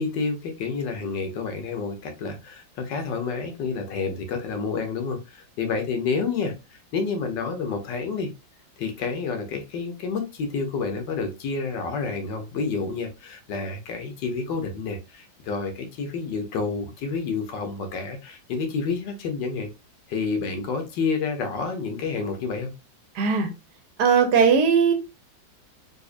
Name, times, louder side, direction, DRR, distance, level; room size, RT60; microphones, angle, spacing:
voice 1, 0.0-8.3 8.8-19.7 20.1-22.7, left 4 dB, 75° left, 1.4 m, -29 dB
voice 2, 23.2-23.5 24.0-24.9, right 6 dB, 70° right, 1.2 m, -18 dB
3.9 x 2.7 x 2.4 m
omnidirectional pair, 2.1 m